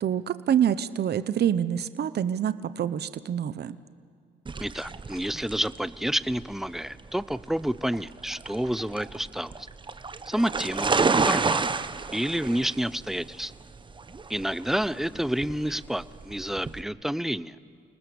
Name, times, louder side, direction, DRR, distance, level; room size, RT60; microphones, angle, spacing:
voice 1, 0.0-3.8, right 9 dB, 55° right, 14 dB, 0.9 m, -26 dB
sound 1, 4.5-16.8, right 4 dB, 25° right, 0.9 m, -30 dB
voice 2, 4.6-9.5 10.3-11.0 11.2-11.6 12.1-13.5 14.3-17.6, equal, ahead, 17 dB, 0.6 m, -29 dB
29.0 x 19.5 x 7.0 m, 2.3 s
cardioid pair, 90°, 20 cm